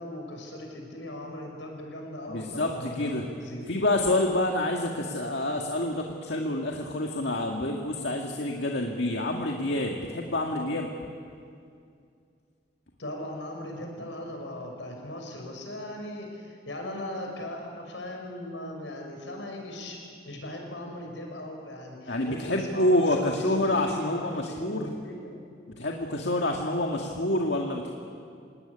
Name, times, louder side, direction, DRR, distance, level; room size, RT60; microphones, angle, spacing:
voice 1, 0.0-3.7 13.0-20.0 20.2-25.3, left 1 dB, 85° left, 1 dB, 6.2 m, -38 dB
voice 2, 2.3-3.3 3.7-10.9 22.1-24.9 25.7-27.9, left 1 dB, 70° left, 1 dB, 1.9 m, -27 dB
27.5 x 18.0 x 9.9 m, 2.3 s
head